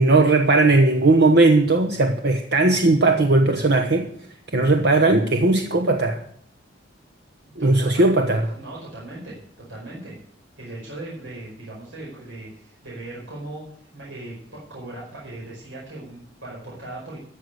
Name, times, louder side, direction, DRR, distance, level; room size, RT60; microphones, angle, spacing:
voice 1, 0.0-4.1 4.5-6.2 7.6-8.4, right 2 dB, 60° right, 5 dB, 1.1 m, -17 dB
voice 2, 7.5-8.1 8.5-10.1 10.6-13.6 13.9-17.2, right 2 dB, 85° right, -5 dB, 5.0 m, -38 dB
13.5 x 6.6 x 9.4 m, 0.65 s
head